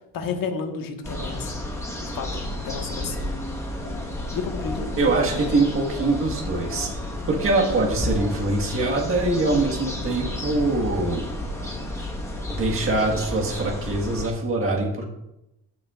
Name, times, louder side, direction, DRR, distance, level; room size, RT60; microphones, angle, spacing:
voice 1, 0.1-1.6 1.9-3.3 4.3-5.5, left 5 dB, 60° left, 3 dB, 1.5 m, -32 dB
sound 1, 1.0-14.3, left 1 dB, 10° left, 1.3 m, -31 dB
voice 2, 5.0-6.9 7.3-11.3 12.5-15.0, right 2 dB, 35° right, -1 dB, 1.6 m, -23 dB
14.0 x 7.1 x 2.4 m, 0.89 s
cardioid pair, 130°, 38 cm